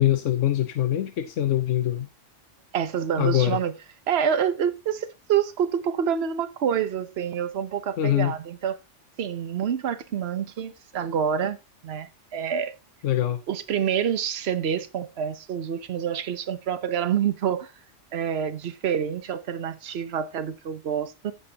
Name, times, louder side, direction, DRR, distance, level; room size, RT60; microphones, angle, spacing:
voice 1, 0.0-2.1 3.2-3.6 8.0-8.4 13.0-13.4, left 12 dB, 90° left, 1.1 m, -23 dB
voice 2, 2.7-3.7 4.1-8.8 9.2-11.6 11.8-12.7 13.5-17.7 18.1-21.3, right 8 dB, 60° right, 1.1 m, -27 dB
15.5 x 5.5 x 2.9 m
omnidirectional pair, 1.2 m